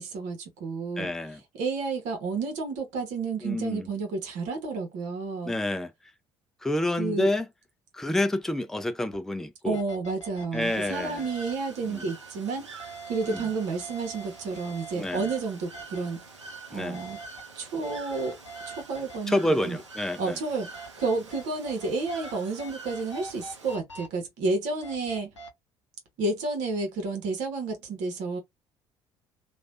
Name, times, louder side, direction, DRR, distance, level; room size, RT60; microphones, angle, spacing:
voice 1, 0.0-1.1 1.6-5.6 7.0-7.3 9.6-16.2 16.7-17.2 17.5-18.4 18.7-19.8 20.2-25.3 26.2-28.4, right 3 dB, 55° right, 1.2 m, -31 dB
voice 2, 1.0-1.4 3.4-3.9 5.4-5.9 6.6-7.5 7.9-9.8 10.5-11.2 11.9-12.1 13.3-13.5 14.9-15.3 16.7-17.0 19.3-20.4, left 1 dB, 5° left, 0.5 m, -28 dB
sound 1, 9.1-9.2 9.7-11.5 12.8-15.4 15.7-16.0 16.9-17.4 17.8-19.2 20.7-22.3 22.6-24.1 24.8-25.5, right 2 dB, 90° left, 0.5 m, -43 dB
Bird / Water, 10.6-23.8, right 4 dB, 85° right, 0.6 m, -46 dB
3.1 x 2.5 x 2.5 m
figure-of-eight pair, 50°, 15 cm